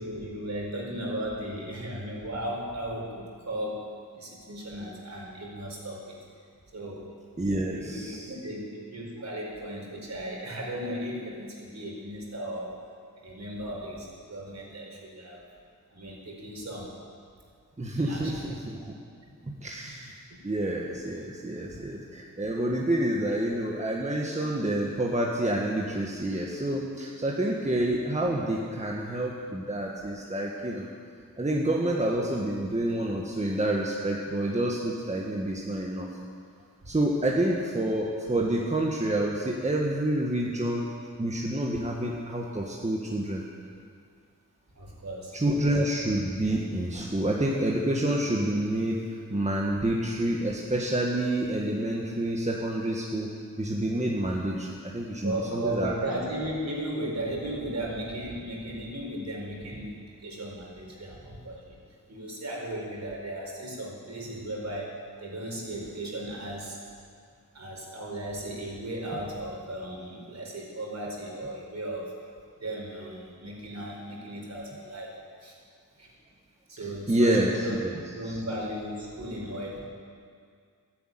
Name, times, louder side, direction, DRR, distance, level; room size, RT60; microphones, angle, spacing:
voice 1, 0.0-3.8 4.1-6.2 6.7-7.1 7.7-12.8 13.2-15.4 15.9-16.9 17.9-18.5 20.3-20.4 37.4-37.5 44.7-45.4 55.2-61.7 62.1-66.8 67.5-72.1 72.6-75.2 75.4-75.6 76.0-76.1 76.7-77.8 78.1-79.8, right 1 dB, 50° right, -2 dB, 4.6 m, -36 dB
voice 2, 7.4-8.3 17.8-18.9 19.5-20.1 20.4-30.9 31.4-36.1 36.9-40.9 41.2-43.4 45.3-49.0 49.3-53.3 53.6-55.9 77.1-78.0 78.3-78.4, right 1 dB, 20° right, -2 dB, 1.6 m, -28 dB
13.0 x 11.0 x 9.2 m, 2.2 s
wide cardioid pair, 100°, 34 cm